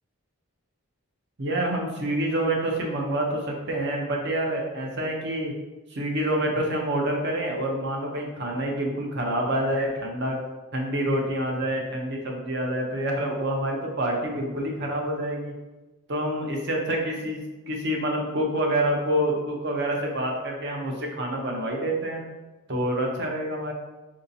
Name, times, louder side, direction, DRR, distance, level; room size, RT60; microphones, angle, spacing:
voice 1, 1.4-5.5 5.9-10.4 10.7-15.5 16.1-22.2 22.7-23.7, right 1 dB, 50° right, 0 dB, 0.7 m, -27 dB
4.8 x 2.8 x 2.7 m, 1.2 s
head